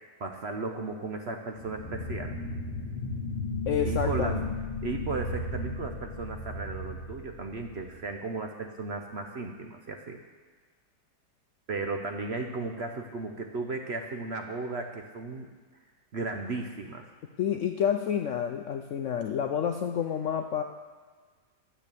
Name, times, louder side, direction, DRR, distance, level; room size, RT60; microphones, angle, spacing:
voice 1, 0.2-2.3 3.8-4.4 4.8-10.2 11.7-15.5 16.1-17.1 17.5-17.6, right 3 dB, 50° right, 4 dB, 0.8 m, -35 dB
sound 1, 1.6-8.0, left 1 dB, 40° left, 4.1 m, -34 dB
voice 2, 3.7-4.4 17.4-20.6, left 8 dB, 65° left, 5 dB, 0.7 m, -29 dB
12.0 x 7.4 x 6.9 m, 1.5 s
omnidirectional pair, 1.8 m